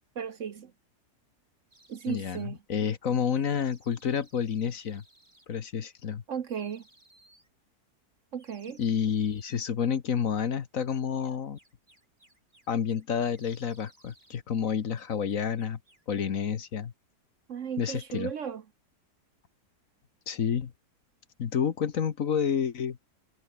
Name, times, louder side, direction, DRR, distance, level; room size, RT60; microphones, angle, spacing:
voice 1, 0.2-0.7 1.9-2.6 6.3-6.8 8.3-8.8 17.5-18.6, right 7 dB, 55° right, 1.2 m, -35 dB
sound 1, 1.7-2.5 3.3-5.5 6.5-7.5 8.4-9.7 11.2-13.0 13.3-14.4 14.6-16.1, right 1 dB, 30° right, 6.2 m, -61 dB
voice 2, 2.1-5.0 5.5-6.2 8.8-11.6 12.7-15.8 16.1-16.9 17.8-18.3 20.3-20.7 21.4-23.0, left 7 dB, 55° left, 1.5 m, -29 dB
omnidirectional pair, 1.7 m